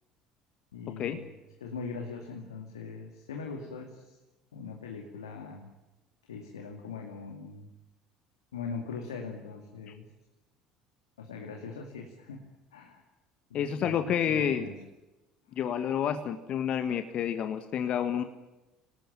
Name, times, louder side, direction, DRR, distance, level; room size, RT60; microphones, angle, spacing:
voice 1, 0.7-1.3 1.6-4.2 4.5-5.7 6.3-7.7 8.5-10.0 11.2-12.4 12.7-13.0 13.5-14.8, left 5 dB, 85° left, 3 dB, 2.4 m, -41 dB
voice 2, 13.5-14.7 15.5-18.2, left 8 dB, 50° left, 9 dB, 1.6 m, -29 dB
25.5 x 19.0 x 9.0 m, 1.1 s
hypercardioid pair, 65°, 2 cm